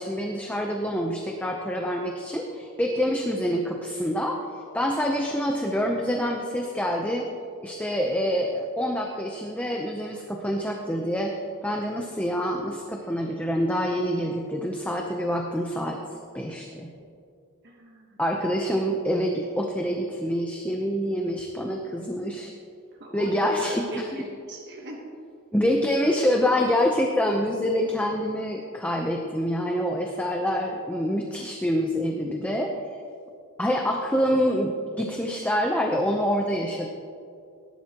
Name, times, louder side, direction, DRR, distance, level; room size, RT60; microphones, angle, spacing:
voice 1, 0.0-7.3 7.6-11.4 11.6-16.9 18.2-22.5 23.1-24.1 25.5-32.8 33.6-36.9, equal, 5° left, 1 dB, 0.7 m, -26 dB
voice 2, 17.6-18.2 22.9-25.0, right 1 dB, 50° right, -2 dB, 1.3 m, -40 dB
17.5 x 11.0 x 3.0 m, 2.4 s
head